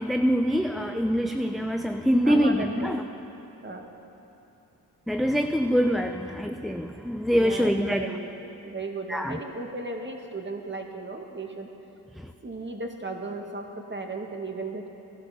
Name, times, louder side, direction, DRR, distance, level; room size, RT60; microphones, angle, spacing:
voice 1, 0.0-3.0 5.1-8.1 9.1-9.4 12.1-12.3, equal, ahead, 5 dB, 0.6 m, -24 dB
voice 2, 2.2-2.9 3.6-3.9 6.1-6.2 7.4-8.3 8.6-11.7 12.4-14.9, right 2 dB, 25° right, 3 dB, 2.0 m, -35 dB
15.5 x 11.5 x 6.0 m, 2.9 s
supercardioid pair, 45°, 42 cm